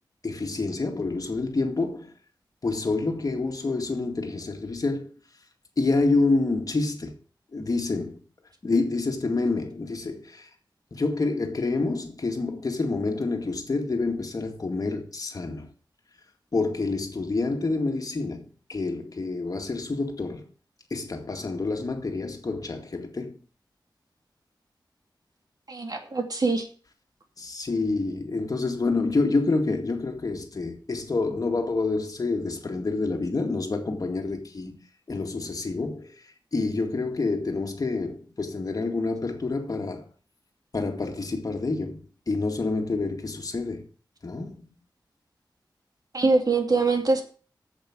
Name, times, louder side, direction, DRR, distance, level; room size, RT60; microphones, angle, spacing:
voice 1, 0.2-2.1 2.6-5.1 5.8-7.1 7.5-8.2 8.6-10.5 10.9-15.7 16.5-20.5 20.9-23.3 27.4-34.8 35.1-36.1 36.5-40.1 40.7-43.9 44.2-44.7, left 3 dB, 50° left, 2.1 m, -28 dB
voice 2, 25.7-26.7 46.1-47.2, right 3 dB, 55° right, 2.4 m, -23 dB
8.8 x 7.7 x 7.2 m
wide cardioid pair, 95°, 8 cm